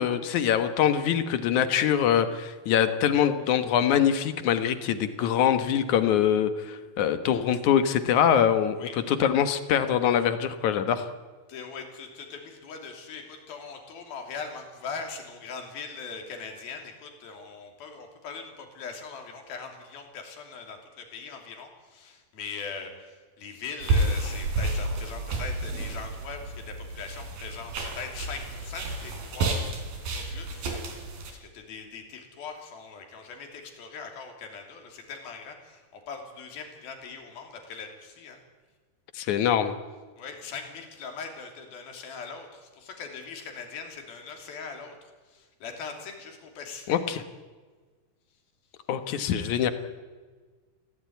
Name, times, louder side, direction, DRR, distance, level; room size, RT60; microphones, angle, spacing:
voice 1, 0.0-11.1 39.1-39.7 46.9-47.2 48.9-49.7, left 9 dB, 65° left, 10 dB, 2.5 m, -24 dB
voice 2, 11.5-29.6 30.1-38.4 40.2-47.0, left 5 dB, 85° left, 4 dB, 4.8 m, -41 dB
sound 1, 23.8-31.3, right 2 dB, 85° right, 5.2 m, -30 dB
24.0 x 16.5 x 9.4 m, 1.4 s
omnidirectional pair, 4.2 m